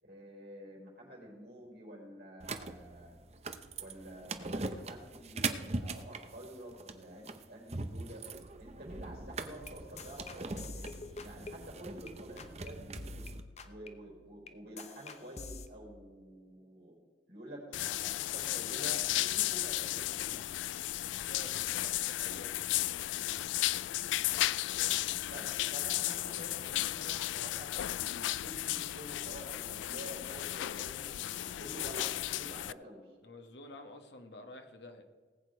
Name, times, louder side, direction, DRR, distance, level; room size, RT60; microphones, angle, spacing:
voice 1, 0.0-3.1 3.8-8.2 8.6-13.2 13.6-16.9 17.3-20.5 25.2-33.1, right 1 dB, 55° right, -4 dB, 4.7 m, -49 dB
sound 1, 2.4-13.4, right 3 dB, 35° right, 0.7 m, -41 dB
sound 2, 9.1-12.1 12.4-12.7 13.0-15.7, left 3 dB, 35° left, 0.8 m, -48 dB
sound 3, 17.7-32.7, left 15 dB, 90° left, 0.3 m, -34 dB
voice 2, 21.3-22.7 33.2-35.0, left 2 dB, 70° left, 5 dB, 1.5 m, -50 dB
19.0 x 8.4 x 4.7 m, 1.5 s
head